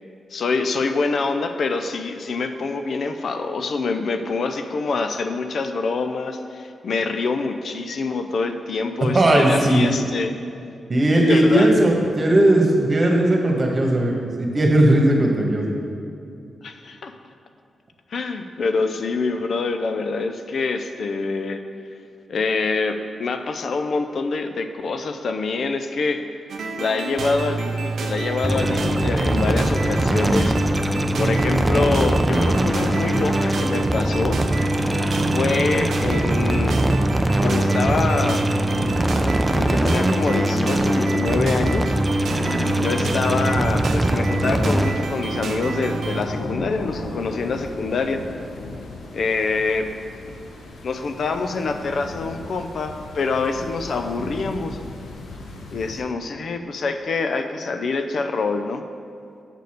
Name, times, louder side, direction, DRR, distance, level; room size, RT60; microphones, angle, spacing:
voice 1, 0.3-10.3 11.2-11.7 16.6-17.1 18.1-21.6 22.3-26.2 26.8-30.6 31.2-34.4 35.2-36.8 37.4-38.4 39.1-42.0 42.7-48.2 49.1-49.9 50.8-54.8 55.7-58.8, left 4 dB, 65° left, 7 dB, 0.5 m, -25 dB
voice 2, 9.1-9.9 10.9-15.7, right 1 dB, 40° right, 0 dB, 1.6 m, -17 dB
sound 1, 26.5-46.2, right 3 dB, 75° right, 0.6 m, -29 dB
sound 2, 28.4-44.9, right 1 dB, 15° right, 0.5 m, -21 dB
sound 3, 42.4-56.0, left 2 dB, 90° left, 0.9 m, -36 dB
8.1 x 4.1 x 6.6 m, 2.5 s
cardioid pair, 65°, 0 cm